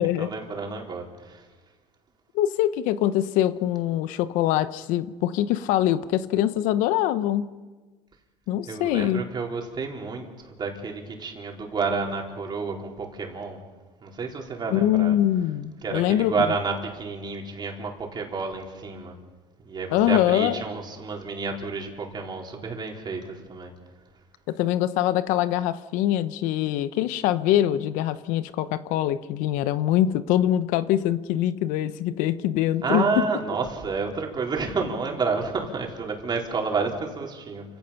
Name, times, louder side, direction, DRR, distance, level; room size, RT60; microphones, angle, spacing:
voice 1, 0.0-1.4 8.6-13.6 14.0-15.1 15.8-19.1 19.7-23.7 32.8-37.6, right 4 dB, 35° right, 0 dB, 4.1 m, -30 dB
voice 2, 2.3-7.5 8.5-9.2 14.7-16.6 19.9-20.6 24.5-33.2, left 12 dB, 75° left, 14 dB, 0.9 m, -23 dB
29.0 x 16.5 x 5.8 m, 1.3 s
supercardioid pair, 105°, 13 cm